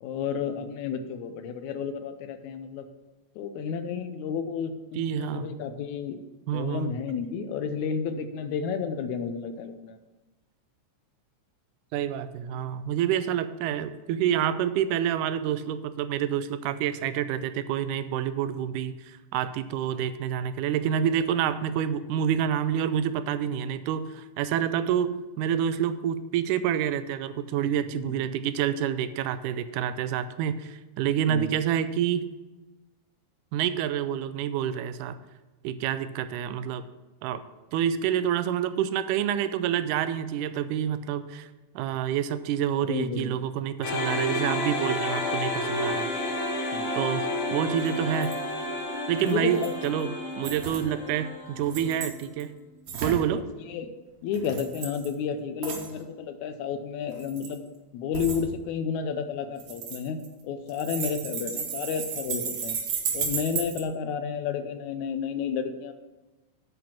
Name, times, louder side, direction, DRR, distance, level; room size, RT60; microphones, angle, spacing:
voice 1, 0.0-2.9 3.4-6.2 6.5-10.0 27.9-28.1 31.3-31.6 42.8-43.4 46.7-46.9 49.2-49.7 53.3-53.9 54.2-57.6 57.9-60.2 60.4-62.8 63.1-65.9, left 6 dB, 80° left, 9 dB, 1.9 m, -31 dB
voice 2, 4.9-5.5 6.5-6.9 11.9-32.3 33.5-35.2 35.6-36.8 37.2-37.4 37.7-41.5 41.8-46.1 46.9-48.3 49.1-52.5 53.0-53.4, right 9 dB, 90° right, 12 dB, 2.1 m, -28 dB
sound 1, 43.8-52.1, left 1 dB, 50° left, 1.8 m, -31 dB
sound 2, 47.9-48.0 48.1-48.3 49.3-49.9 50.4-50.8 51.6-52.4 52.9-53.2 54.3-55.1 55.6-55.9 57.1-57.6 58.1-58.4 59.6-60.4 60.7-63.8, right 6 dB, 70° right, 2.5 m, -33 dB
8.7 x 5.2 x 6.0 m, 1.1 s
omnidirectional pair, 3.5 m